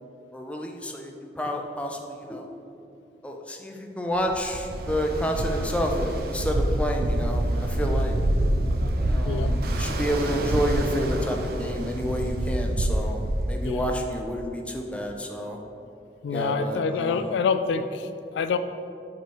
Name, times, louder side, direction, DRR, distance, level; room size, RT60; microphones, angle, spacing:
voice 1, 0.3-2.5 3.2-8.1 9.1-13.2 13.5-15.6 16.3-17.4, equal, 5° left, 2 dB, 0.4 m, -29 dB
Ocean, 4.2-14.1, right 1 dB, 55° right, 0.5 m, -26 dB
voice 2, 16.2-18.6, left 5 dB, 80° left, 10 dB, 0.3 m, -27 dB
6.9 x 3.1 x 4.6 m, 2.6 s
head